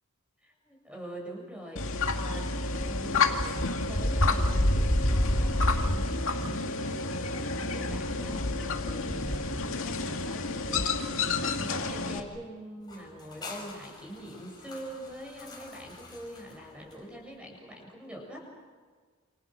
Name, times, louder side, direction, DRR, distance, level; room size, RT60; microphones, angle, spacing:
voice 1, 0.4-18.5, equal, 5° right, 0 dB, 7.3 m, -44 dB
sound 1, 1.8-12.2, left 2 dB, 65° left, 2.3 m, -28 dB
sound 2, 12.8-17.4, left 3 dB, 20° left, 5.5 m, -47 dB
29.0 x 28.0 x 6.5 m, 1.5 s
head